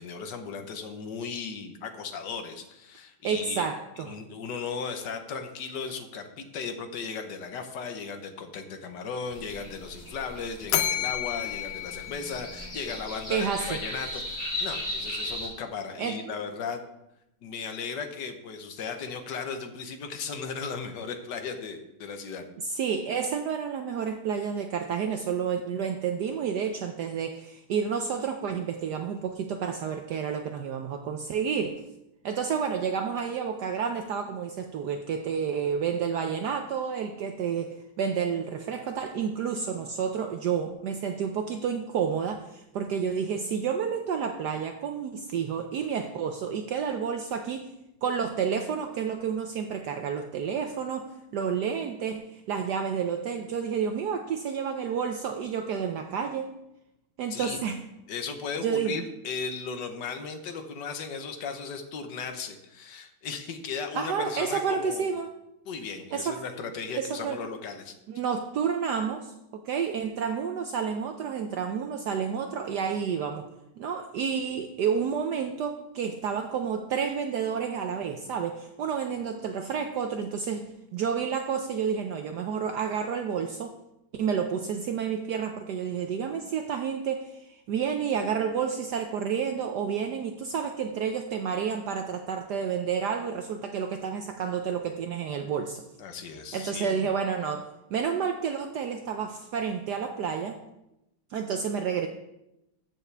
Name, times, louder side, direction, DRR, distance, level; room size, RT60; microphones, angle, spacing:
voice 1, 0.0-3.7 4.0-16.8 17.4-22.4 57.3-57.6 58.1-65.1 65.6-67.9 96.0-97.1, left 5 dB, 60° left, 6 dB, 1.4 m, -36 dB
voice 2, 3.2-4.2 13.3-13.8 16.0-16.3 22.6-31.8 32.2-47.7 48.0-56.6 57.2-57.8 58.6-59.0 63.9-65.3 66.1-66.4 66.9-67.4 68.1-73.5 73.8-83.7 84.1-95.8 96.5-100.6 101.3-102.1, right 7 dB, 70° right, 6 dB, 1.0 m, -30 dB
sound 1, 9.3-15.5, left 1 dB, 10° left, 3.3 m, -37 dB
Bell, 10.7-13.0, left 10 dB, 75° left, 1.5 m, -31 dB
13.5 x 7.2 x 3.4 m, 0.88 s
omnidirectional pair, 2.4 m